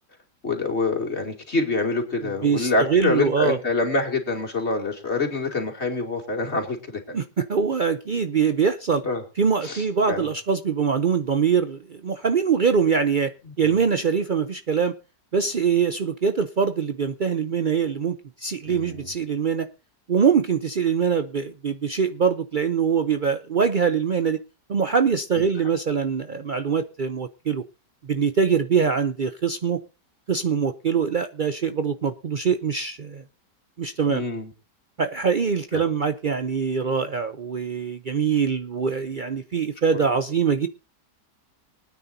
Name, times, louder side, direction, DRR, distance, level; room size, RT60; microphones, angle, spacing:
voice 1, 0.4-7.2 9.0-9.2 9.6-10.3 13.4-13.8 18.6-19.1 25.3-25.4 34.1-34.5 35.7-35.8 39.9-40.0, left 3 dB, 40° left, 2 dB, 3.0 m, -26 dB
voice 2, 2.4-3.6 7.1-9.0 9.4-13.3 13.6-14.9 15.3-19.7 20.1-24.4 24.7-27.6 28.0-29.8 30.3-33.2 33.8-34.2 35.0-40.7, right 6 dB, 90° right, 9 dB, 0.4 m, -23 dB
24.0 x 9.6 x 2.7 m, 0.31 s
omnidirectional pair, 1.8 m